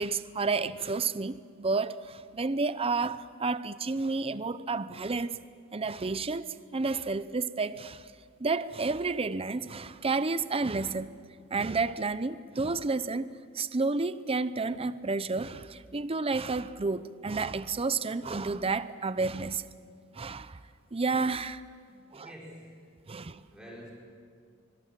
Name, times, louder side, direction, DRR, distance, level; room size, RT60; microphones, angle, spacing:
voice 1, 0.0-5.4 5.7-8.1 8.4-11.2 11.5-13.3 13.5-19.7 20.1-20.6 20.9-21.6 22.1-22.3 23.1-23.4, right 3 dB, 30° right, 0.7 m, -31 dB
voice 2, 21.8-22.8 23.5-23.9, equal, 5° right, 5.1 m, -48 dB
24.5 x 23.0 x 7.6 m
head